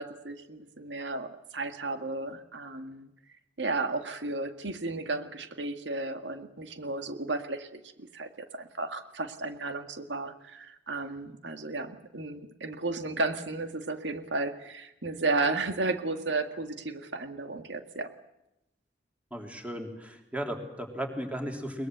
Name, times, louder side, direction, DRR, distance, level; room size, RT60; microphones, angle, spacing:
voice 1, 0.0-3.1 3.6-18.1, right 3 dB, 85° right, 8 dB, 1.9 m, -33 dB
voice 2, 19.3-21.9, equal, 10° right, 4 dB, 3.6 m, -35 dB
22.5 x 21.5 x 8.1 m, 0.90 s
head